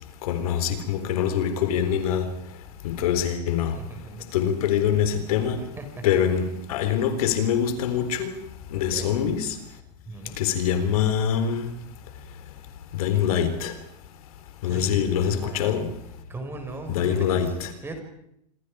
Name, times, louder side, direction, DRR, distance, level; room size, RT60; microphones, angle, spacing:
voice 1, 0.2-2.3 2.8-3.8 4.3-5.6 6.0-8.3 8.7-9.6 10.4-11.7 12.9-13.7 14.6-15.9 16.9-17.7, left 8 dB, 65° left, 4.0 m, -24 dB
voice 2, 3.6-4.3 5.8-6.0 8.9-9.1 10.1-10.4 14.7-15.8 16.3-17.4 17.8-18.0, right 2 dB, 10° right, 5.3 m, -38 dB
27.0 x 26.5 x 5.0 m
supercardioid pair, 150°, 20 cm